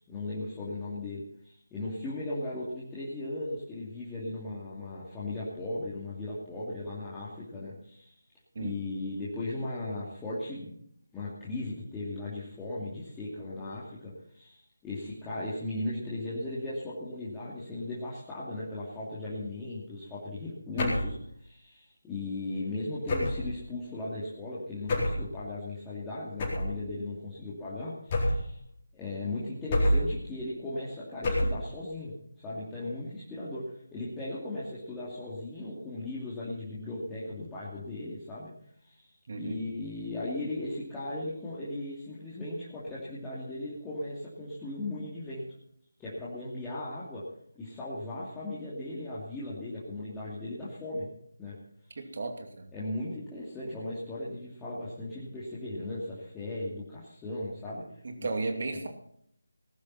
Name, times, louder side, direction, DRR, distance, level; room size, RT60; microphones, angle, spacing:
voice 1, 0.0-8.1 8.6-10.7 11.1-21.2 21.4-28.6 28.9-38.5 38.8-39.1 39.4-45.4 46.0-47.3 47.5-51.1 51.4-51.6 52.7-57.8 58.2-58.3 58.7-58.8, left 2 dB, 10° left, -9 dB, 2.6 m, -37 dB
sound 1, 20.8-21.2 23.1-23.5 24.9-25.3 26.4-26.8 28.1-28.6 29.7-30.2 31.2-31.7, left 1 dB, 25° left, 4.4 m, -27 dB
voice 2, 39.3-39.6 52.0-52.7 58.0-58.9, right 3 dB, 40° right, 5 dB, 2.6 m, -34 dB
19.5 x 11.5 x 4.2 m, 0.68 s
figure-of-eight pair, 155°, 0 cm